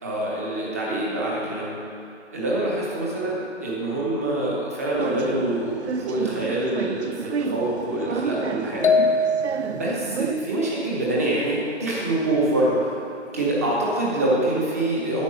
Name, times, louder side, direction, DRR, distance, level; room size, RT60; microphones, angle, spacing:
voice 1, 0.0-1.8 2.3-8.9 9.6-12.9 13.3-15.2, right 1 dB, 15° right, -5 dB, 0.9 m, -25 dB
sound 1, 5.0-10.3, right 6 dB, 65° right, 0.6 m, -31 dB
sound 2, 8.8-10.0, left 2 dB, 45° left, 0.7 m, -21 dB
9.7 x 7.1 x 5.4 m, 2.5 s
figure-of-eight pair, 160°, 36 cm